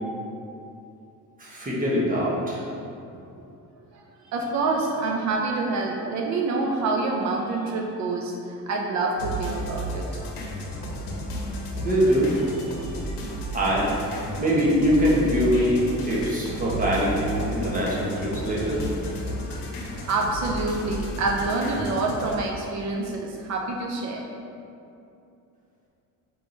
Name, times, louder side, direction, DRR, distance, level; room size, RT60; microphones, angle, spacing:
voice 1, 1.4-2.6 11.8-12.9 13.5-14.0 14.4-18.8, equal, 25° right, -6 dB, 0.9 m, -23 dB
voice 2, 3.9-10.2 20.1-24.2, right 3 dB, 55° right, 1 dB, 0.4 m, -27 dB
sound 1, 9.2-22.4, equal, 85° left, 0.8 m, -33 dB
4.5 x 3.5 x 2.6 m, 2.7 s
cardioid pair, 130°, 34 cm